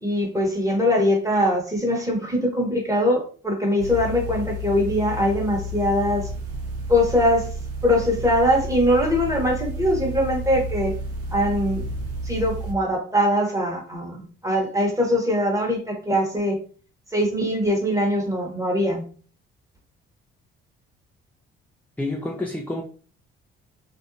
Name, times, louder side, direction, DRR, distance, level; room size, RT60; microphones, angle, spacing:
voice 1, 0.0-6.3 6.9-7.5 7.8-10.9 11.3-11.9 12.2-16.6 17.1-19.0, equal, 10° right, 1 dB, 1.2 m, -22 dB
sound 1, 3.8-12.7, equal, 50° right, 0.8 m, -31 dB
voice 2, 22.0-22.8, left 2 dB, 5° left, 1 dB, 0.4 m, -28 dB
2.6 x 2.0 x 2.6 m, 0.41 s
hypercardioid pair, 50°, 29 cm